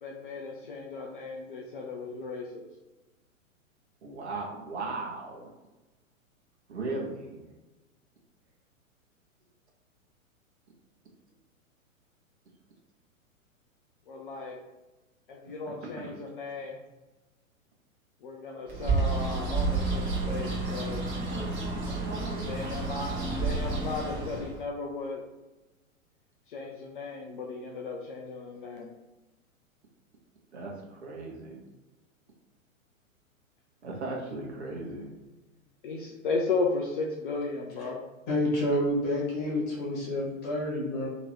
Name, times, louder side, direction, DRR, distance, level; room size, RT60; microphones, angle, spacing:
voice 1, 0.0-2.7 14.1-14.6 15.3-16.8 18.2-21.1 22.4-25.2 26.5-28.9 35.8-38.1, left 3 dB, 40° left, 0 dB, 0.5 m, -35 dB
voice 2, 4.0-5.5 6.7-7.4 16.0-16.1 30.5-31.6 33.8-35.1, right 3 dB, 50° right, -1 dB, 1.1 m, -37 dB
Bird, 18.7-24.6, right 3 dB, 20° right, 1.0 m, -30 dB
voice 3, 38.3-41.1, left 1 dB, 25° left, -4 dB, 1.4 m, -28 dB
2.9 x 2.9 x 4.3 m, 1.1 s
figure-of-eight pair, 110°, 41 cm